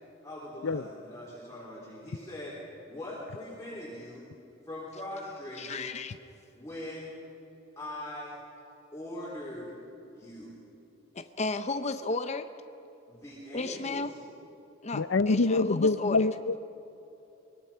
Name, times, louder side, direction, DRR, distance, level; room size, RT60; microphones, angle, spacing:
voice 1, 0.2-2.6 2.9-4.3 4.7-5.9 6.5-7.1 7.8-8.4 8.9-9.7 10.1-10.6 13.1-14.1 14.9-15.0, left 1 dB, 15° left, -7 dB, 3.7 m, -41 dB
voice 2, 5.6-6.1 11.1-12.5 13.5-14.1 14.8-16.3, left 3 dB, 35° left, 9 dB, 0.7 m, -33 dB
voice 3, 14.9-16.6, left 3 dB, 65° left, 16 dB, 0.6 m, -25 dB
23.5 x 21.5 x 5.7 m, 3.0 s
head